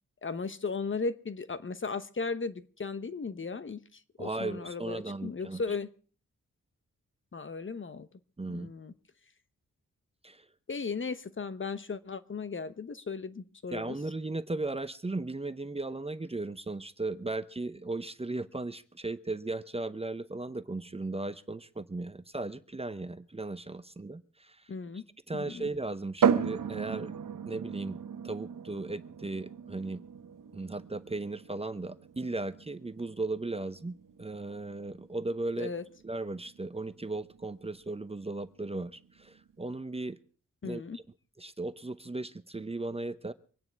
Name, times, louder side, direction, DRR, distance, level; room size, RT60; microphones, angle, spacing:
voice 1, 0.2-5.9 7.3-8.1 8.5-8.9 10.7-14.0 24.7-25.0 25.3-25.7 35.6-35.8 40.6-41.0, left 4 dB, 40° left, 13 dB, 1.0 m, -36 dB
voice 2, 4.2-5.6 8.4-8.7 10.2-10.4 13.7-24.7 25.3-27.1 27.5-28.0 28.2-30.0 30.5-35.7 36.0-40.2 40.6-41.0 41.4-43.3, right 2 dB, 20° right, 12 dB, 0.8 m, -36 dB
sound 1, 26.2-39.7, right 7 dB, 85° right, 1.2 m, -36 dB
25.0 x 9.7 x 4.6 m, 0.41 s
cardioid pair, 75°, 32 cm